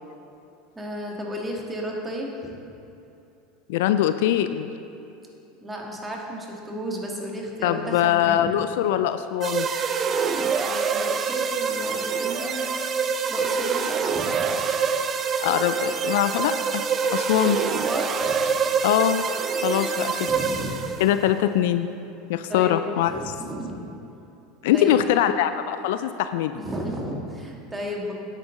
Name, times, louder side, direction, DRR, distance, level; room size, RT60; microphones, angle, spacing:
voice 1, 0.7-2.6 5.6-8.5 10.6-12.7 13.3-14.5 17.8-18.5 19.7-20.0 20.2-20.8 22.5-23.8 24.7-25.1 26.6-28.1, equal, 15° right, -1 dB, 1.8 m, -33 dB
voice 2, 3.7-4.7 7.6-9.7 15.4-16.8 17.1-17.6 18.8-19.2 19.6-20.3 21.0-21.9 22.3-23.1 24.6-26.6, left 11 dB, 65° left, 11 dB, 0.3 m, -22 dB
sound 1, 9.4-21.2, right 5 dB, 35° right, 0.6 m, -25 dB
9.6 x 8.6 x 3.8 m, 2.8 s
hypercardioid pair, 80°, 0 cm